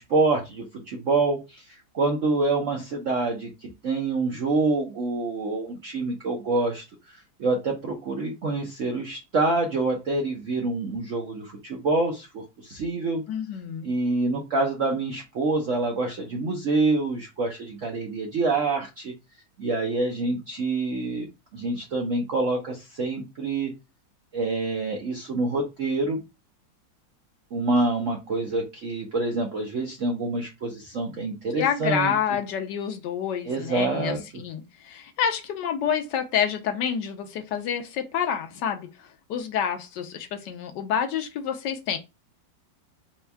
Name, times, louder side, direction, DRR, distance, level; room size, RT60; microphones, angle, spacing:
voice 1, 0.0-13.2 13.8-19.1 19.6-21.3 21.5-23.7 24.3-26.2 27.5-32.1 33.4-34.4, right 3 dB, 65° right, 0.7 m, -26 dB
voice 2, 13.3-13.9 31.6-42.0, left 8 dB, 75° left, 1.2 m, -28 dB
4.4 x 2.2 x 3.3 m
omnidirectional pair, 2.1 m